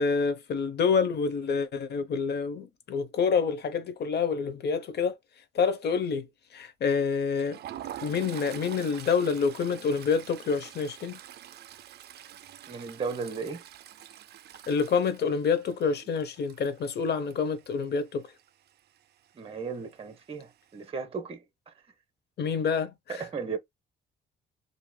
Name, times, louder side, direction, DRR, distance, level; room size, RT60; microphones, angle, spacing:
voice 1, 0.0-5.2 5.5-6.3 6.5-7.6 8.0-11.2 14.7-18.3 22.4-23.3, left 5 dB, 55° left, 0.7 m, -27 dB
Toilet flush, 7.2-18.0 18.3-18.5 18.8-19.0 19.9-20.4, right 11 dB, 55° right, 0.4 m, -45 dB
voice 2, 12.7-13.6 19.4-21.4 23.1-23.6, right 5 dB, 30° right, 0.7 m, -35 dB
3.0 x 2.6 x 2.2 m
cardioid pair, 90°, 20 cm